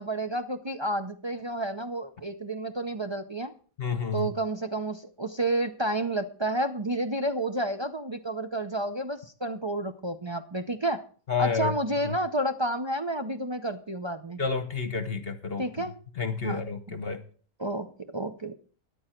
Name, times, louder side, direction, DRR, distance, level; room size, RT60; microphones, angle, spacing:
voice 1, 0.0-3.5 4.1-11.0 11.4-14.4 15.6-15.9 16.4-16.6 17.6-18.5, right 1 dB, 40° right, 6 dB, 0.4 m, -30 dB
voice 2, 3.8-4.3 11.3-11.8 12.0-12.2 14.4-15.6 16.2-17.2, left 5 dB, 45° left, 9 dB, 1.2 m, -30 dB
14.0 x 10.5 x 4.4 m, 0.42 s
omnidirectional pair, 1.5 m